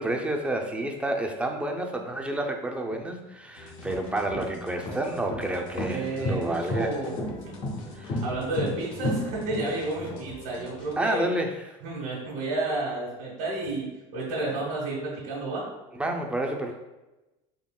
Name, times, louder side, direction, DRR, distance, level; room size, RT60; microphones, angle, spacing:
voice 1, 0.0-6.9 8.0-8.2 11.0-11.5 16.0-16.7, right 1 dB, 5° right, 2 dB, 0.4 m, -29 dB
sound 1, 2.9-3.0 3.7-10.2, left 1 dB, 50° left, 0.7 m, -32 dB
sound 2, 3.5-10.9, left 3 dB, 90° left, 0.7 m, -45 dB
voice 2, 5.9-7.2 7.4-7.5 7.9-11.3 11.8-15.7, right 2 dB, 90° right, -6 dB, 1.1 m, -31 dB
3.7 x 3.4 x 2.2 m, 1.0 s
supercardioid pair, 110°, 16 cm